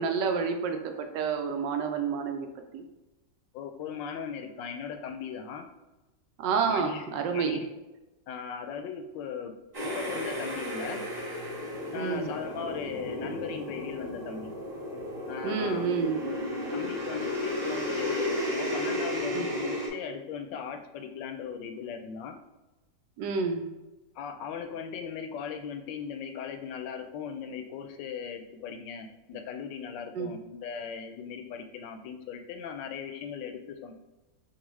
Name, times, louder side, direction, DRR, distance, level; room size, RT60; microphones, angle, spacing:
voice 1, 0.0-2.5 2.7-2.8 6.4-7.6 11.9-12.3 15.4-16.2 19.3-19.5 23.2-23.7 30.2-30.3, right 5 dB, 80° right, 5 dB, 1.2 m, -29 dB
voice 2, 3.5-5.7 6.7-7.1 7.3-7.7 8.3-9.5 9.8-11.0 11.9-14.5 15.3-15.9 16.7-22.4 24.2-33.9, left 7 dB, 85° left, 6 dB, 1.2 m, -38 dB
sound 1, 9.7-19.9, left 1 dB, 25° right, 1.3 m, -33 dB
7.0 x 2.3 x 3.1 m, 1.1 s
omnidirectional pair, 1.9 m